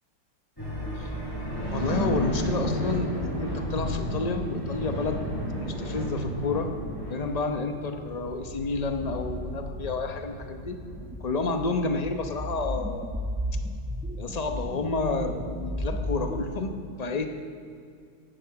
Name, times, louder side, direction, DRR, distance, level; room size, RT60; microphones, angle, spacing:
sound 1, 0.6-13.0, equal, 10° left, 4.6 m, -33 dB
voice 1, 1.5-5.2 5.6-6.7 7.1-10.8 11.2-13.1 14.2-16.7 17.0-17.3, left 3 dB, 35° left, 5 dB, 0.6 m, -30 dB
sound 2, 10.7-16.4, equal, 10° right, 0.4 m, -34 dB
15.5 x 11.0 x 5.8 m, 2.2 s
omnidirectional pair, 2.0 m